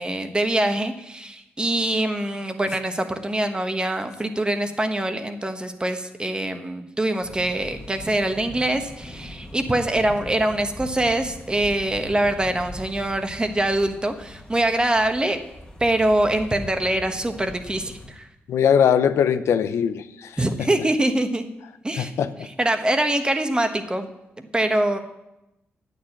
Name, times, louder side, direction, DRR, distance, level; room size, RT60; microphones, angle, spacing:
voice 1, 0.0-15.4 15.8-18.3 20.4-21.5 21.8-22.1 22.6-24.1 24.4-25.0, right 1 dB, 20° right, 7 dB, 1.2 m, -24 dB
sound 1, 7.2-18.2, left 1 dB, 20° left, 1.6 m, -41 dB
voice 2, 18.5-20.4 22.0-22.3, left 8 dB, 85° left, 11 dB, 0.6 m, -20 dB
9.3 x 6.6 x 8.6 m, 0.93 s
cardioid pair, 65°, 5 cm